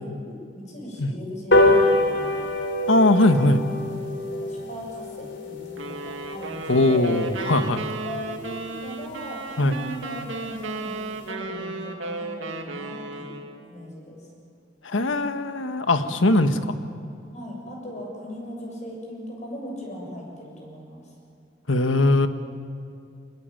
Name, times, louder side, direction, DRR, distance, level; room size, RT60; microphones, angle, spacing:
voice 1, 0.0-2.5 4.1-7.1 8.0-13.4 13.7-14.3 16.2-16.7 17.3-21.1, left 1 dB, 35° left, 0 dB, 7.2 m, -38 dB
sound 1, 1.5-8.3 8.7-8.8 9.1-9.2 9.5-9.6 9.9-10.0 10.2-10.5 10.9-11.0, left 1 dB, 65° left, 3.5 m, -25 dB
voice 2, 2.9-3.6 6.7-7.8 9.6-9.7 14.8-16.5 21.7-22.3, left 2 dB, 85° left, 9 dB, 1.5 m, -20 dB
sound 2, 5.8-13.7, right 3 dB, 90° right, 2.2 m, -34 dB
25.5 x 20.5 x 9.2 m, 2.5 s
head